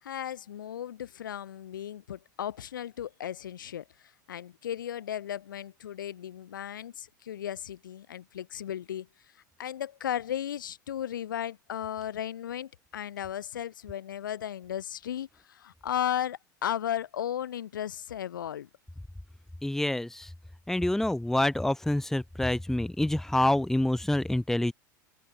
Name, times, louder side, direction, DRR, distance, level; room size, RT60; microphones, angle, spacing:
voice 1, 0.0-9.1 9.6-18.7, left 10 dB, 85° left, 4.9 m, -35 dB
voice 2, 19.6-20.3 20.7-24.7, left 1 dB, 5° left, 1.3 m, -27 dB
open air
hypercardioid pair, 100°, 10 cm